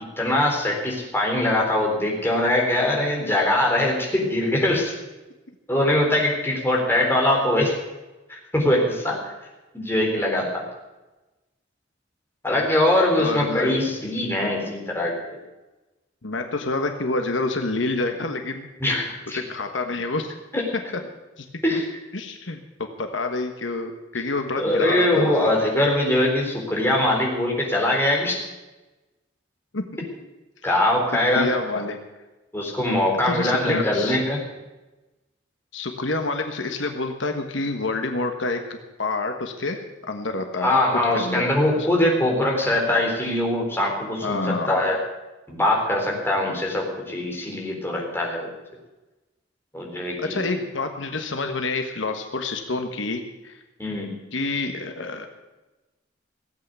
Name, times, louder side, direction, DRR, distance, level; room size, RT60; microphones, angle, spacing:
voice 1, 0.2-4.9 5.7-7.7 8.3-9.3 9.7-10.7 12.4-15.4 18.8-19.4 20.5-20.7 21.6-21.8 24.6-28.4 30.6-31.5 32.5-34.4 40.6-45.0 45.5-48.5 49.7-50.4 53.8-54.1, left 1 dB, 10° left, -1 dB, 3.9 m, -22 dB
voice 2, 13.2-13.7 14.2-14.3 16.2-18.7 19.3-20.3 20.7-20.8 21.4-21.8 22.1-25.3 29.7-30.1 31.3-32.0 33.2-34.2 35.7-40.8 41.1-41.4 41.7-41.9 44.2-44.7 46.1-46.2 50.2-53.6 54.3-55.3, left 3 dB, 75° left, 5 dB, 1.4 m, -28 dB
17.0 x 8.6 x 8.1 m, 1.1 s
head